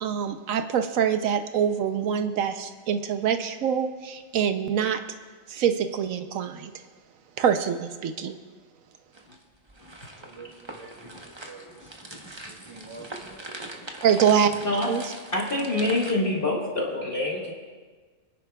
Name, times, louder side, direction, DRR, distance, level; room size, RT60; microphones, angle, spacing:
voice 1, 0.0-5.0 5.5-6.7 7.4-8.4 14.0-14.5 14.9-15.0, right 8 dB, 80° right, 8 dB, 1.1 m, -25 dB
sound 1, 9.1-16.1, right 2 dB, 25° right, 0.9 m, -42 dB
voice 2, 10.2-11.9 12.4-13.9 14.5-14.8, right 2 dB, 10° left, -4 dB, 3.7 m, -46 dB
voice 3, 15.3-17.5, left 2 dB, 45° left, -3 dB, 1.7 m, -26 dB
28.0 x 10.5 x 2.3 m, 1.4 s
omnidirectional pair, 1.4 m